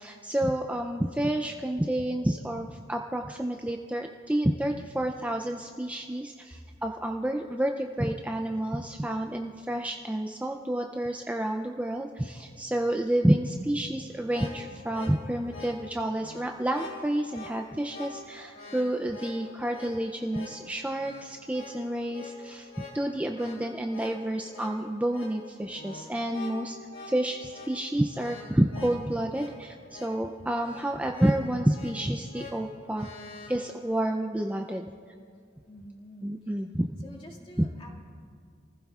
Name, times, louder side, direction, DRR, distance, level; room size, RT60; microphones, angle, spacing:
voice 1, 0.0-26.8 27.1-33.1 33.5-34.9 36.2-36.9 37.6-37.7, right 1 dB, 10° right, 3 dB, 0.4 m, -29 dB
sound 1, 14.1-33.6, left 2 dB, 90° left, 3.1 m, -45 dB
voice 2, 17.6-18.7 19.4-19.8 20.6-20.7 22.6-23.0 35.7-36.3 37.0-37.9, left 1 dB, 30° left, -2 dB, 2.1 m, -51 dB
28.0 x 15.5 x 2.4 m, 2.2 s
head